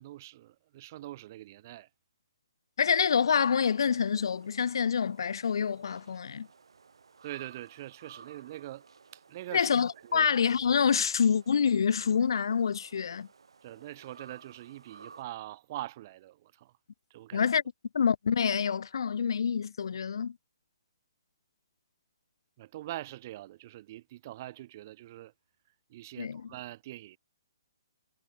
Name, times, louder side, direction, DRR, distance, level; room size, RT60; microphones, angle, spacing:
voice 1, 0.0-1.9 7.2-8.8 9.1-9.7 10.1-10.3 13.6-16.7 17.1-17.5 22.6-25.3 25.9-27.2, right 15 dB, 40° right, 1.7 m, -43 dB
voice 2, 2.8-6.5 9.5-13.3 17.3-17.6 17.9-20.4 26.2-26.5, left 7 dB, 70° left, 1.6 m, -27 dB
sound 1, 2.9-15.2, right 5 dB, 80° right, 4.7 m, -56 dB
hypercardioid pair, 150°, 3 cm